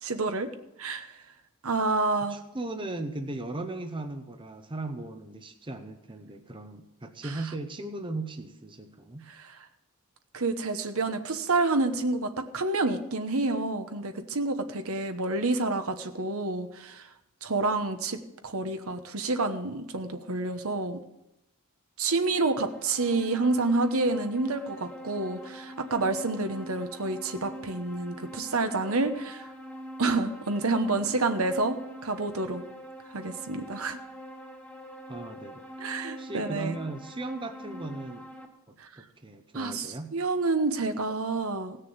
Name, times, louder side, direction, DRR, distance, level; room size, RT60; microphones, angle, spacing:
voice 1, 0.0-0.5 0.8-1.1 1.6-2.4 7.2-7.4 9.3-9.6 10.3-17.1 17.4-21.0 22.0-29.4 30.0-32.6 33.1-34.0 35.8-36.8 38.8-38.9 39.5-41.8, right 3 dB, 65° right, 8 dB, 1.1 m, -28 dB
voice 2, 2.3-9.2 35.1-35.6 36.2-38.3 38.7-40.1, right 2 dB, 20° right, 6 dB, 0.8 m, -37 dB
sound 1, 22.1-38.5, equal, 5° left, 1.6 m, -44 dB
17.0 x 6.7 x 7.2 m, 0.88 s
head